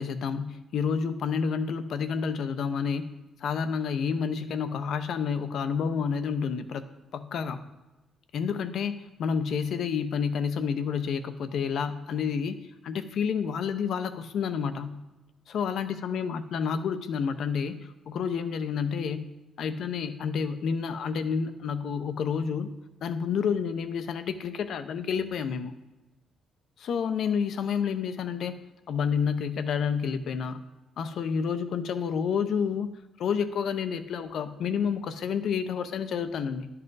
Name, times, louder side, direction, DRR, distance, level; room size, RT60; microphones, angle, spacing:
voice 1, 0.0-3.1 3.4-6.8 7.1-7.6 8.3-15.0 15.5-19.3 19.6-22.7 23.0-25.7 26.8-28.6 28.9-30.6 31.0-32.9 33.2-36.7, left 6 dB, 70° left, 11 dB, 0.6 m, -29 dB
10.5 x 5.5 x 4.0 m, 1.1 s
cardioid pair, 90°, 0 cm